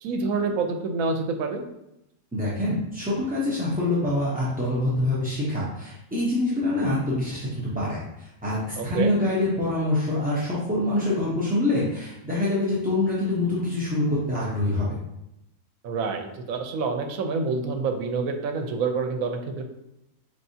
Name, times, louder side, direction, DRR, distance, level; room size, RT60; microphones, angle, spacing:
voice 1, 0.0-1.6 8.8-9.2 15.8-19.7, right 4 dB, 80° right, 5 dB, 1.0 m, -27 dB
voice 2, 2.3-15.0, left 1 dB, 10° right, -8 dB, 0.4 m, -25 dB
4.5 x 3.4 x 2.7 m, 0.86 s
omnidirectional pair, 1.4 m